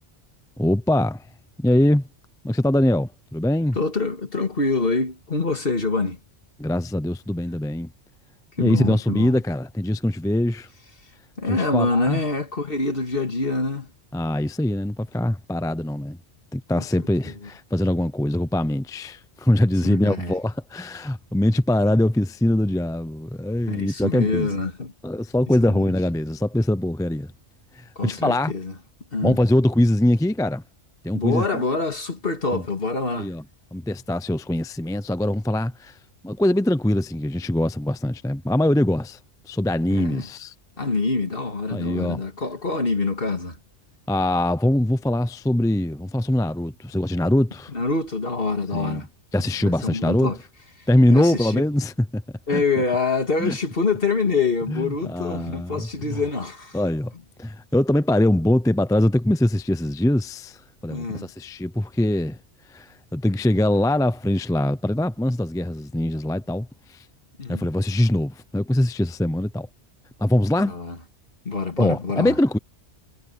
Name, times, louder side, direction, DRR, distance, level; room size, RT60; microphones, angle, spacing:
voice 1, 0.6-1.3 1.6-2.0 2.4-3.8 6.6-7.9 8.6-10.7 11.5-12.2 14.1-16.2 16.5-24.5 25.0-27.3 27.7-28.5 29.2-30.6 31.0-31.6 32.5-32.6 33.1-33.4 33.7-36.0 36.2-39.2 39.5-40.5 41.7-42.2 44.1-47.7 48.7-49.0 49.3-50.3 50.9-52.2 52.5-52.6 53.4-53.6 54.7-56.2 56.7-57.1 57.4-62.4 62.7-67.1 67.5-69.7 70.2-70.7 71.8-72.6, left 1 dB, 5° left, 0.4 m, -22 dB
voice 2, 3.7-6.2 8.6-9.3 11.4-13.9 16.8-16.9 17.2-17.5 19.8-20.3 23.7-24.9 25.7-25.8 28.0-28.7 29.1-29.4 31.1-33.3 39.9-40.3 40.8-43.6 47.7-49.1 49.6-50.4 50.8-51.6 52.5-56.8 60.9-61.3 67.4-67.7 70.7-71.0 71.4-72.3, left 3 dB, 50° left, 2.6 m, -26 dB
omnidirectional pair, 1.2 m